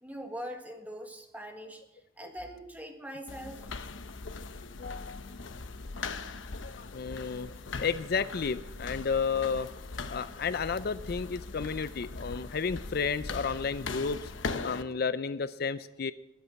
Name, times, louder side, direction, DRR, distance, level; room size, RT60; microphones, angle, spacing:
voice 1, 0.0-1.8 2.2-3.6, equal, 10° right, 4 dB, 1.7 m, -42 dB
sound 1, 3.3-14.8, left 4 dB, 90° left, 0.9 m, -40 dB
voice 2, 4.8-5.2 6.6-7.5 7.8-9.7 10.1-14.3 14.6-16.1, left 5 dB, 55° left, 14 dB, 0.5 m, -32 dB
21.0 x 8.1 x 5.9 m, 0.96 s
head